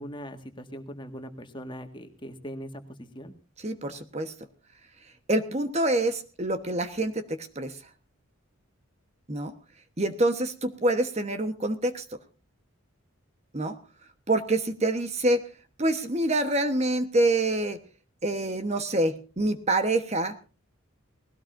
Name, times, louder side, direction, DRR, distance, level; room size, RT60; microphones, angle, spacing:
voice 1, 0.0-3.3, equal, 20° left, 6 dB, 1.8 m, -40 dB
voice 2, 3.6-4.3 5.3-7.8 9.3-9.5 10.0-12.0 13.5-13.8 14.3-15.5 15.8-17.8 18.2-20.3, right 2 dB, 30° right, 8 dB, 1.2 m, -26 dB
20.0 x 17.5 x 2.7 m, 0.36 s
head